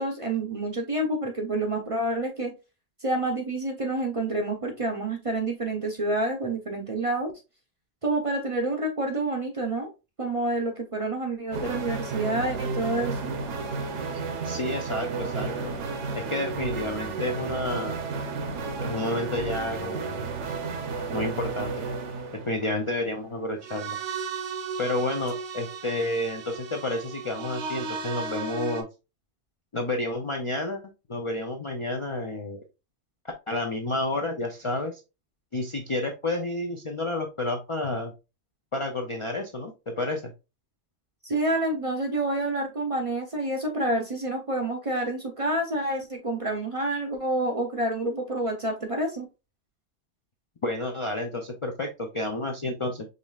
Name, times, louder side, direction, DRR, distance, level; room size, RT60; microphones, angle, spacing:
voice 1, 0.0-2.5 3.0-7.3 8.0-9.9 10.2-13.3 41.2-49.3, right 2 dB, 40° right, 3 dB, 0.5 m, -28 dB
sound 1, 11.5-28.8, right 4 dB, 75° right, 1.1 m, -33 dB
voice 2, 14.4-15.5 16.1-18.0 18.8-20.2 21.1-21.7 22.5-24.0 24.8-28.9 29.7-30.8 31.1-32.6 33.5-35.0 35.5-38.1 38.7-40.3 50.6-53.1, left 2 dB, 45° left, 3 dB, 0.4 m, -30 dB
5.2 x 3.1 x 2.3 m, 0.28 s
omnidirectional pair, 1.2 m